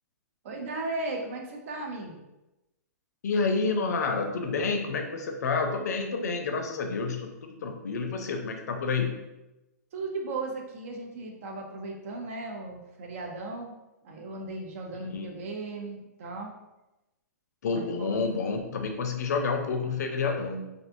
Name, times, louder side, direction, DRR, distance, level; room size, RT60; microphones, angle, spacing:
voice 1, 0.4-2.3 9.9-13.8 14.0-16.5 17.7-18.2, right 2 dB, 50° right, 1 dB, 0.6 m, -36 dB
voice 2, 3.2-9.2 15.0-15.3 17.6-20.6, left 4 dB, 70° left, 4 dB, 0.4 m, -29 dB
2.6 x 2.1 x 2.6 m, 0.98 s
hypercardioid pair, 120°, 9 cm